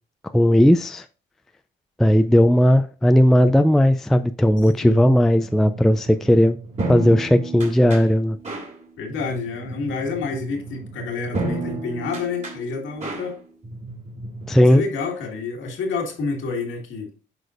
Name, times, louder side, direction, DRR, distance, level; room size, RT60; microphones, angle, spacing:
voice 1, 0.3-1.0 2.0-6.6 6.9-8.4 14.5-14.8, equal, ahead, 0.3 m, -16 dB
voice 2, 4.6-5.1 9.0-13.4 14.6-17.1, left 4 dB, 80° left, 1.9 m, -29 dB
sound 1, 5.4-14.7, right 2 dB, 35° right, 2.6 m, -33 dB
7.8 x 5.0 x 2.5 m
cardioid pair, 90°, 20 cm